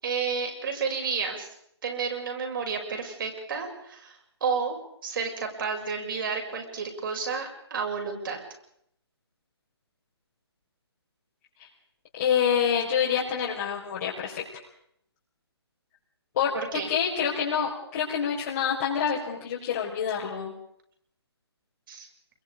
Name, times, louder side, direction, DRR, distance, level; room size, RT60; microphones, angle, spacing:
voice 1, 0.0-1.5 1.8-4.8 5.0-8.4 16.5-16.9 21.9-22.1, right 5 dB, 50° right, 2 dB, 6.8 m, -31 dB
voice 2, 12.1-14.4 16.3-16.5 16.9-20.5, left 8 dB, 40° left, -5 dB, 5.0 m, -27 dB
27.0 x 22.5 x 5.1 m, 0.71 s
figure-of-eight pair, 145°, 14 cm